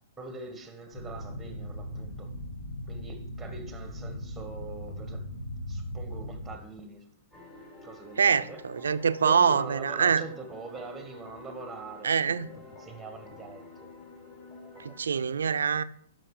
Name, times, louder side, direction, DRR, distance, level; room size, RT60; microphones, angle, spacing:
voice 1, 0.2-2.4 2.9-5.3 5.7-7.1 7.8-8.9 9.2-14.1 14.6-15.0, right 4 dB, 5° right, 1.5 m, -43 dB
sound 1, 0.9-6.5, equal, 75° left, 3.2 m, -38 dB
sound 2, 7.3-15.0, left 2 dB, 25° left, 4.4 m, -49 dB
voice 2, 8.2-10.2 12.0-12.5 14.8-15.8, right 6 dB, 85° right, 0.6 m, -24 dB
10.5 x 6.1 x 4.9 m
hypercardioid pair, 130°, 0 cm